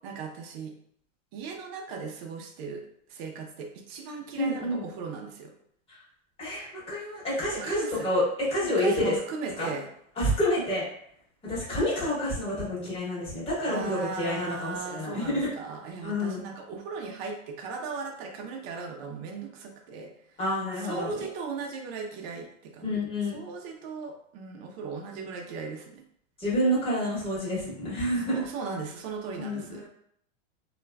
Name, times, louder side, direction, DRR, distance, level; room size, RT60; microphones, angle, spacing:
voice 1, 0.0-0.7 1.3-2.8 3.1-5.5 7.6-8.1 8.6-9.9 13.7-20.1 20.8-22.8 23.3-26.0 28.1-29.8, right 5 dB, 50° right, 2 dB, 0.7 m, -37 dB
voice 2, 4.3-4.9 6.4-9.1 9.6-9.7 10.2-10.9 11.4-15.5 16.0-16.4 20.4-21.1 22.8-23.4 26.4-28.4 29.4-29.8, left 1 dB, 15° left, -8 dB, 1.2 m, -28 dB
2.9 x 2.4 x 2.2 m, 0.66 s
supercardioid pair, 140°, 39 cm